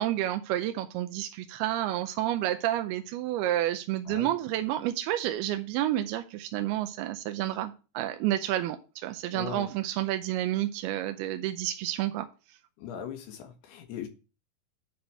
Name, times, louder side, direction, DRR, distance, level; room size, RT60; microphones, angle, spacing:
voice 1, 0.0-12.3, right 13 dB, 85° right, 7 dB, 2.5 m, -30 dB
voice 2, 9.3-9.7 12.8-14.1, left 8 dB, 90° left, 4 dB, 3.4 m, -39 dB
10.0 x 3.4 x 5.9 m, 0.32 s
omnidirectional pair, 4.5 m